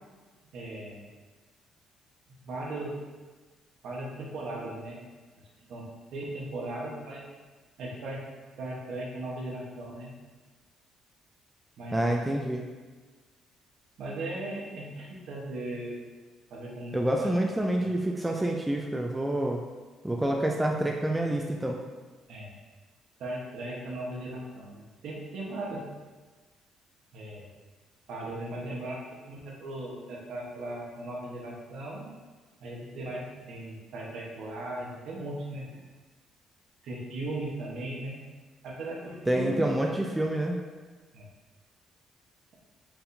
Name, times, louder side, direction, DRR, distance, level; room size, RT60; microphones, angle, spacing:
voice 1, 0.5-1.1 2.4-2.9 3.8-5.0 5.6-5.8 6.1-7.2 7.8-8.2 8.6-10.1 11.8-12.0 14.0-15.9 16.5-17.3 17.8-18.2 22.3-22.6 23.2-25.9 27.1-27.5 28.1-32.1 32.6-35.8 36.8-38.2 38.6-39.6 41.1-41.2, right 1 dB, 65° right, -3 dB, 0.9 m, -37 dB
voice 2, 11.9-12.7 16.9-19.6 20.0-21.8 39.3-40.6, right 1 dB, 10° right, 1 dB, 0.3 m, -27 dB
4.6 x 3.5 x 2.6 m, 1.3 s
cardioid pair, 125°, 0 cm